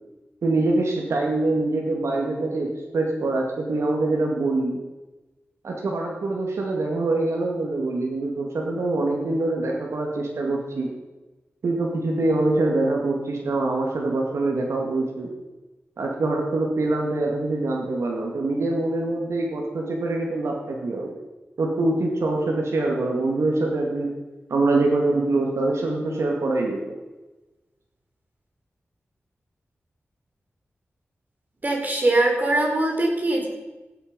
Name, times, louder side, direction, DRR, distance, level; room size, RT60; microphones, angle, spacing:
voice 1, 0.4-4.8 5.6-10.9 11.6-15.3 16.0-21.1 21.6-24.1 24.5-27.0, right 2 dB, 85° right, 0 dB, 2.2 m, -24 dB
voice 2, 31.6-33.5, right 2 dB, 40° right, 1 dB, 3.8 m, -22 dB
16.0 x 8.5 x 5.3 m, 1.1 s
wide cardioid pair, 75°, 5 cm